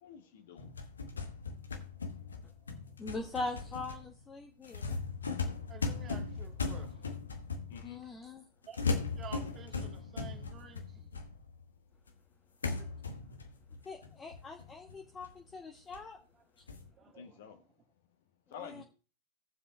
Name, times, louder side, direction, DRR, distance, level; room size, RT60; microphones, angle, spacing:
voice 1, 0.0-0.7 7.7-8.0 17.2-17.6 18.5-18.8, left 6 dB, 55° left, 1.4 m, -49 dB
sound 1, 0.6-8.1 8.7-11.7 12.1-12.2 12.6-15.5 15.9-16.0 16.7-16.9, left 4 dB, 75° left, 1.1 m, -38 dB
voice 2, 3.0-5.0 7.8-8.4 13.8-16.2 18.5-18.8, left 2 dB, 15° left, 0.9 m, -42 dB
voice 3, 5.7-7.2 8.0-8.1 8.7-8.8 9.2-11.3 12.8-12.9 16.3-16.4 16.9-17.6 18.6-18.7, right 8 dB, 25° right, 1.6 m, -52 dB
18.0 x 7.4 x 2.3 m
figure-of-eight pair, 90°, 0 cm